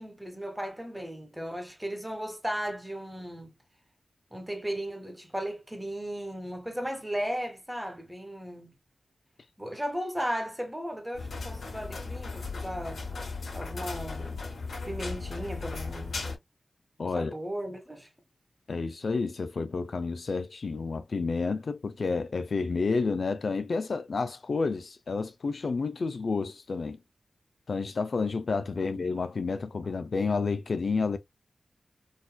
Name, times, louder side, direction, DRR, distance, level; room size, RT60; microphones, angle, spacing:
voice 1, 0.0-3.5 4.3-8.8 9.6-13.0 13.5-14.5 14.9-16.3 17.2-18.1, equal, 5° right, 1.2 m, -36 dB
sound 1, 11.1-16.4, left 4 dB, 80° left, 1.5 m, -36 dB
voice 2, 17.0-17.3 18.7-27.0 27.7-31.2, left 4 dB, 65° left, 0.4 m, -30 dB
4.0 x 2.5 x 2.2 m
wide cardioid pair, 65°, 0 cm